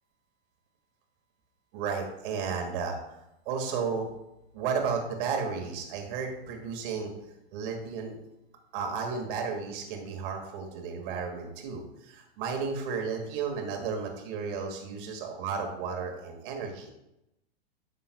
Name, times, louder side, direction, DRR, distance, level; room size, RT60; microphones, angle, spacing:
voice 1, 1.7-3.0 3.5-4.1 4.5-7.1 7.5-8.2 8.7-16.9, right 5 dB, 55° right, 2 dB, 2.0 m, -33 dB
11.0 x 6.8 x 2.3 m, 0.88 s
hypercardioid pair, 120°, 32 cm